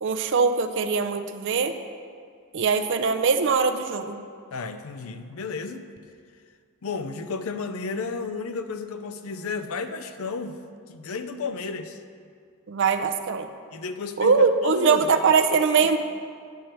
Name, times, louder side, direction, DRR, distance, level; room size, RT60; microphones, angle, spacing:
voice 1, 0.0-1.8 2.5-4.2 12.7-13.5 14.2-16.0, right 5 dB, 55° right, 9 dB, 0.5 m, -22 dB
voice 2, 4.5-5.9 6.8-10.6 10.9-12.0 13.7-15.1 15.8-15.9, left 4 dB, 65° left, 9 dB, 0.5 m, -32 dB
9.2 x 4.4 x 6.5 m, 2.2 s
head